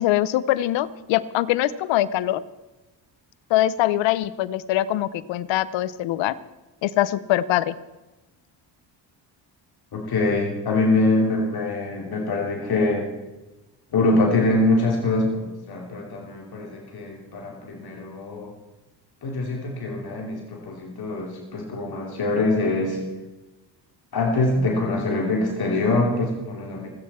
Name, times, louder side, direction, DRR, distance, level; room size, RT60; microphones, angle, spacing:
voice 1, 0.0-2.4 3.5-6.3 6.8-7.7, left 14 dB, 85° left, 18 dB, 0.8 m, -23 dB
voice 2, 9.9-13.1 13.9-18.5 19.2-23.0 24.1-26.9, left 2 dB, 55° left, 0 dB, 3.2 m, -24 dB
28.0 x 9.5 x 4.4 m, 1.1 s
cardioid pair, 80°, 44 cm